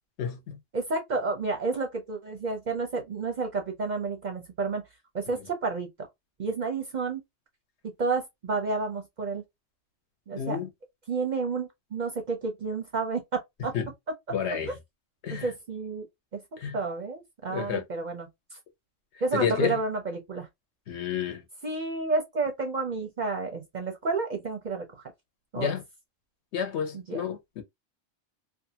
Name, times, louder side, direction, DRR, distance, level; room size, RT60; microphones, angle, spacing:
voice 1, 0.2-0.6 10.4-10.7 13.7-13.9 14.3-14.7 15.2-15.5 16.6-16.8 17.5-17.8 19.3-19.8 20.9-21.4 25.6-25.8 26.5-27.6, left 7 dB, 65° left, 1.0 m, -30 dB
voice 2, 0.7-4.8 5.1-5.9 6.4-7.2 8.0-9.4 10.3-10.6 11.1-13.2 13.6-13.7 15.4-16.1 16.7-18.3 19.2-20.5 21.6-25.0 25.5-25.7 26.9-27.2, right 3 dB, 50° right, 0.6 m, -30 dB
2.5 x 2.4 x 2.7 m
omnidirectional pair, 1.3 m